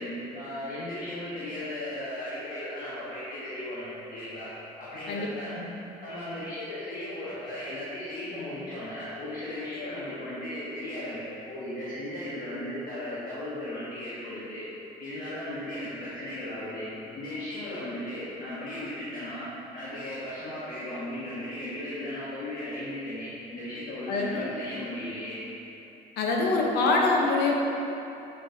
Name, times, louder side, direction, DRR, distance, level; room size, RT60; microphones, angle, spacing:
voice 1, 0.0-5.6 6.0-14.6 15.0-25.4, left 1 dB, 55° left, -9 dB, 1.3 m, -36 dB
voice 2, 5.1-5.7 24.1-24.5 26.2-27.5, left 3 dB, 80° left, 0 dB, 1.0 m, -25 dB
7.8 x 6.5 x 2.8 m, 2.9 s
cardioid pair, 110°, 17 cm